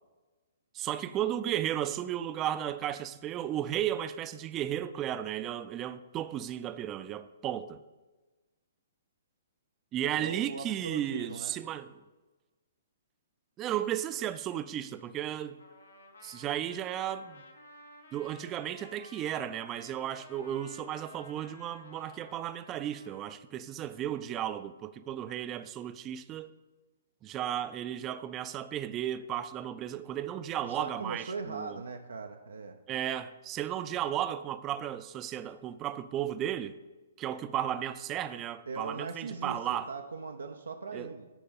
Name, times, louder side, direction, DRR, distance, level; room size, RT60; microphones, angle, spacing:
voice 1, 0.7-7.8 9.9-11.9 13.6-15.6 16.2-17.4 18.1-26.5 27.2-31.8 32.9-36.7 37.2-39.9 40.9-41.1, right 11 dB, 25° right, 0.4 m, -34 dB
voice 2, 10.2-11.6 30.6-32.8 38.7-41.3, right 4 dB, 85° right, 0.6 m, -39 dB
Trumpet, 15.6-23.3, left 2 dB, 85° left, 1.4 m, -54 dB
10.0 x 4.7 x 5.4 m
hypercardioid pair, 130°, 0 cm